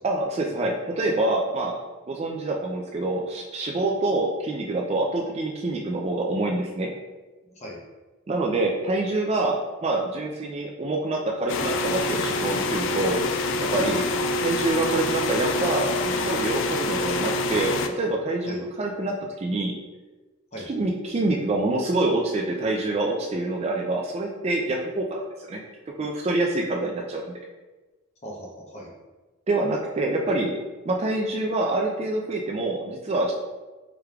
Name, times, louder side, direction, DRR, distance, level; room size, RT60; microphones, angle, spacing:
voice 1, 0.0-1.8 2.1-6.9 8.3-13.2 13.7-14.0 14.4-19.7 20.7-25.6 26.0-27.3 29.5-30.5 30.9-33.3, right 2 dB, 30° right, 0 dB, 0.3 m, -26 dB
voice 2, 7.4-7.8 13.7-14.2 18.5-18.6 20.5-20.7 28.2-28.9, equal, 30° left, -2 dB, 0.7 m, -40 dB
sound 1, 11.5-17.9, left 2 dB, 60° left, 0.3 m, -26 dB
4.8 x 3.2 x 2.3 m, 1.2 s
head